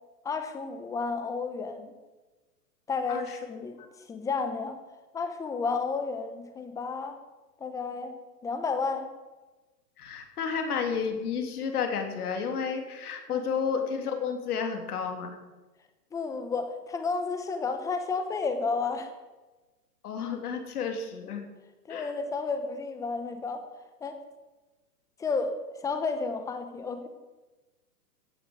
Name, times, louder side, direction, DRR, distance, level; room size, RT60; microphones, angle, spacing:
voice 1, 0.2-1.9 2.9-4.8 5.1-7.2 7.6-8.2 8.4-9.1 13.3-13.5 16.1-19.1 21.9-23.6 24.0-24.2 25.2-25.5 25.8-27.1, left 4 dB, 5° left, 8 dB, 0.9 m, -32 dB
voice 2, 3.1-3.5 10.0-15.3 20.0-21.5 21.9-22.1, left 6 dB, 65° left, 5 dB, 3.0 m, -31 dB
15.5 x 8.6 x 7.9 m, 1.2 s
hypercardioid pair, 150°, 49 cm